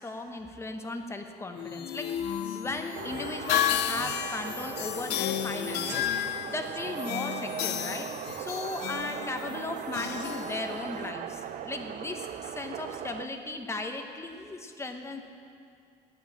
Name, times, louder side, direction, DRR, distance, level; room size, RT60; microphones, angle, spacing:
voice 1, 0.0-8.1 8.4-15.2, left 2 dB, 15° left, 5 dB, 1.0 m, -37 dB
sound 1, 1.6-11.1, left 10 dB, 80° left, 0.5 m, -33 dB
sound 2, 2.9-13.3, right 10 dB, 50° right, 0.4 m, -39 dB
11.0 x 6.3 x 8.6 m, 2.4 s
cardioid pair, 110°, 17 cm